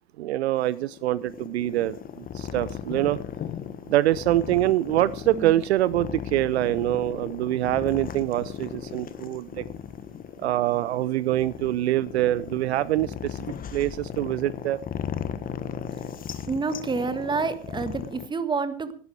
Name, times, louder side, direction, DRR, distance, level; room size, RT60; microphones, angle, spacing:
voice 1, 0.2-3.2 3.9-9.7 10.4-14.8, right 14 dB, 60° right, 20 dB, 0.6 m, -25 dB
sound 1, 0.6-18.3, left 8 dB, 25° left, 1.4 m, -36 dB
voice 2, 16.5-18.9, right 4 dB, 15° right, 12 dB, 1.5 m, -28 dB
16.5 x 11.5 x 4.8 m, 0.43 s
hypercardioid pair, 100°, 36 cm